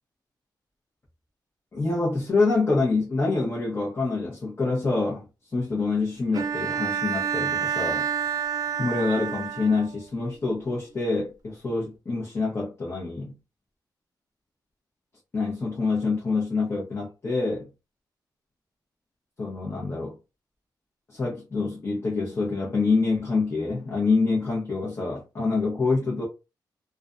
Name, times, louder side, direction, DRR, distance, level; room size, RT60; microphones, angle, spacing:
voice 1, 1.7-5.3 5.5-8.1 8.8-13.3 15.3-17.7 19.4-20.2 21.1-26.3, left 3 dB, 35° left, 0.8 m, -26 dB
Bowed string instrument, 6.3-10.1, right 8 dB, 55° right, 0.5 m, -28 dB
2.4 x 2.2 x 2.4 m
cardioid pair, 95°, 8 cm